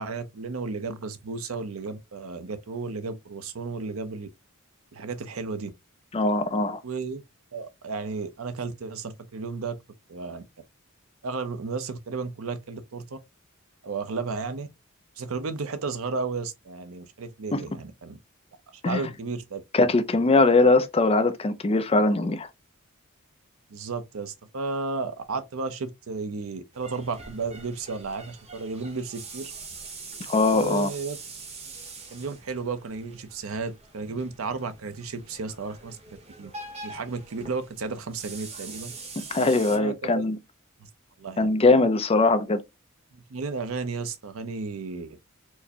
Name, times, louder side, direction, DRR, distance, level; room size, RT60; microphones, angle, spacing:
voice 1, 0.0-4.3 4.9-5.7 6.8-7.2 7.5-9.8 10.1-10.4 11.2-13.2 13.8-14.7 15.2-18.2 18.7-19.6 23.7-29.5 30.5-31.2 32.1-36.5 36.8-38.9 39.7-40.3 41.2-41.5 43.1-45.2, right 4 dB, 80° right, 0.6 m, -33 dB
voice 2, 6.1-6.8 17.5-17.6 18.8-19.0 19.7-22.5 30.3-30.9 39.3-40.4 41.4-42.6, left 3 dB, 30° left, 0.5 m, -21 dB
sound 1, 26.7-39.8, right 3 dB, 30° right, 0.9 m, -44 dB
4.5 x 2.1 x 2.7 m
head